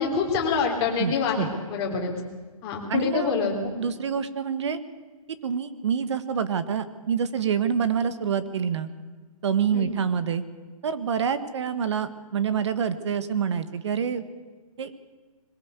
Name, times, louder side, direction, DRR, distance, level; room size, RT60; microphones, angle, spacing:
voice 1, 0.0-2.1 2.6-3.7 9.7-9.9, left 5 dB, 20° left, 0 dB, 3.4 m, -26 dB
voice 2, 1.0-1.5 2.9-3.3 3.8-4.8 5.4-8.9 9.4-10.4 10.8-14.2 14.8-15.0, right 7 dB, 50° right, 12 dB, 1.6 m, -27 dB
22.0 x 16.5 x 8.2 m, 1.4 s
hypercardioid pair, 165°, 18 cm